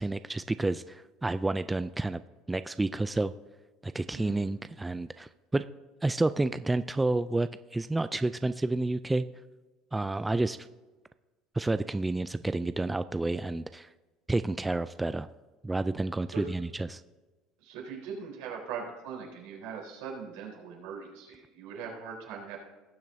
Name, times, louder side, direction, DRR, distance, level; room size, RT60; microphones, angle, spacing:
voice 1, 0.0-2.2 2.5-3.3 3.8-5.7 6.0-9.3 9.9-10.6 11.5-13.9 14.3-15.3 15.6-17.0, right 2 dB, 10° right, 12 dB, 0.3 m, -30 dB
voice 2, 4.1-4.5 16.3-16.5 17.6-22.6, right 6 dB, 80° right, -2 dB, 3.7 m, -40 dB
18.5 x 7.3 x 2.7 m, 1.2 s
supercardioid pair, 95°, 0 cm